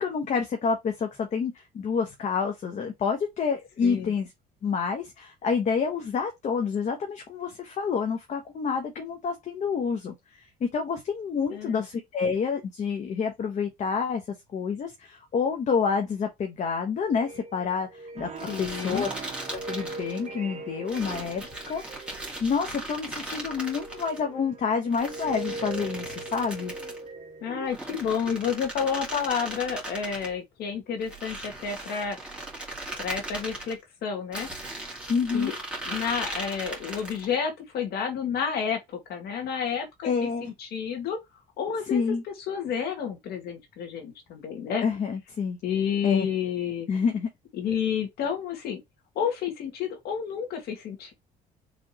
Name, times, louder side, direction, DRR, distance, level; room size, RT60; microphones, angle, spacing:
voice 1, 0.0-4.3 4.6-14.2 14.5-18.3 18.6-19.1 19.5-22.1 22.4-26.7 35.1-35.6 40.0-40.5 41.9-42.2 44.8-45.6 46.0-46.3 46.9-47.3, left 5 dB, 45° left, 1.1 m, -28 dB
voice 2, 3.8-4.1 11.5-11.9 18.5-19.1 27.4-32.2 33.0-34.5 35.3-35.5 35.9-38.8 39.1-41.2 41.6-42.0 42.5-44.8 45.6-46.9 47.5-48.8 49.2-51.1, left 7 dB, 70° left, 2.0 m, -30 dB
sound 1, 17.1-22.9 23.4-27.7, right 3 dB, 40° right, 1.2 m, -40 dB
sound 2, 18.4-20.3 20.9-24.2 24.9-27.0 27.7-30.3 31.0-33.7 34.3-37.3, right 1 dB, 5° right, 2.2 m, -38 dB
5.1 x 3.5 x 3.0 m
cardioid pair, 110°, 17 cm